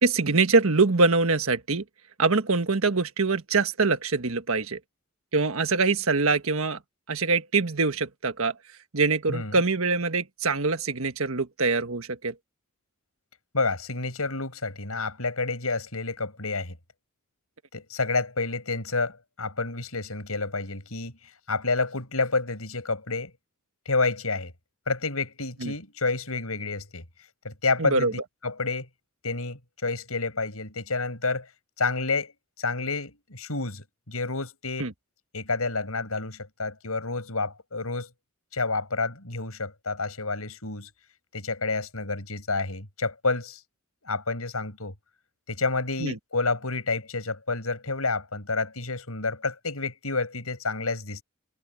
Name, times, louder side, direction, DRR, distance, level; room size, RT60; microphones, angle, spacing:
voice 1, 0.0-1.8 2.2-4.8 5.3-6.8 7.1-8.5 8.9-12.3 25.6-25.7 27.8-28.1 34.8-34.9 46.0-46.2, right 3 dB, 75° right, 1.5 m, -24 dB
voice 2, 13.5-16.7 17.7-21.1 21.5-23.3 23.9-24.5 24.9-27.0 27.4-28.1 28.4-28.9 29.2-31.5 31.8-32.3 32.6-34.8 35.3-38.1 38.5-40.9 41.3-43.6 44.1-44.9 45.5-51.2, left 3 dB, 85° left, 5.9 m, -29 dB
head